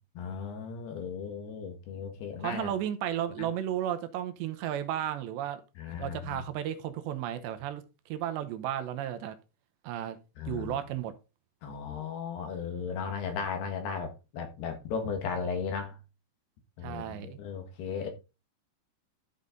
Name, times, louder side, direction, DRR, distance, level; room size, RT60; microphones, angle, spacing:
voice 1, 0.2-2.7 3.4-3.5 5.8-6.4 10.4-10.8 11.6-16.0 16.8-18.1, left 6 dB, 70° left, 3.6 m, -36 dB
voice 2, 2.4-5.6 6.0-9.4 9.8-10.2 10.5-11.1 16.8-17.4, right 11 dB, 85° right, 3.1 m, -34 dB
12.0 x 5.7 x 3.8 m
omnidirectional pair, 5.0 m